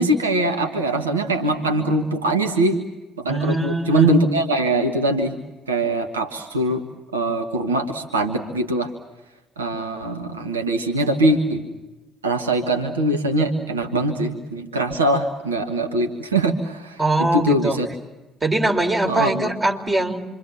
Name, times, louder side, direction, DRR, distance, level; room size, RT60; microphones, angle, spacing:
voice 1, 0.0-2.8 3.2-5.4 5.7-6.8 7.1-8.9 9.6-11.7 12.2-17.9 19.1-19.5, right 1 dB, 80° right, 4 dB, 1.6 m, -22 dB
voice 2, 3.3-4.1 17.0-17.8 18.4-20.3, right 2 dB, 25° right, 3 dB, 4.1 m, -22 dB
27.5 x 25.0 x 7.3 m, 1.1 s
figure-of-eight pair, 50°, 0 cm